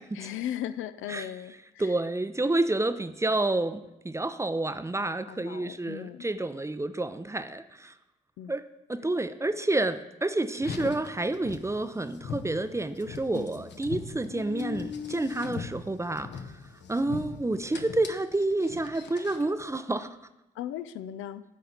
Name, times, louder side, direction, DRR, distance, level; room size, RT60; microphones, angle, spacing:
voice 1, 0.2-1.5 5.3-6.2 8.4-8.5 20.6-21.4, left 11 dB, 75° left, 12 dB, 0.4 m, -36 dB
voice 2, 1.1-7.9 8.5-8.6 8.9-16.5 16.9-20.2, right 2 dB, 15° right, 11 dB, 0.5 m, -29 dB
Car, 10.5-19.5, left 6 dB, 60° left, 0.8 m, -40 dB
11.0 x 4.2 x 3.9 m, 0.95 s
supercardioid pair, 50°, 21 cm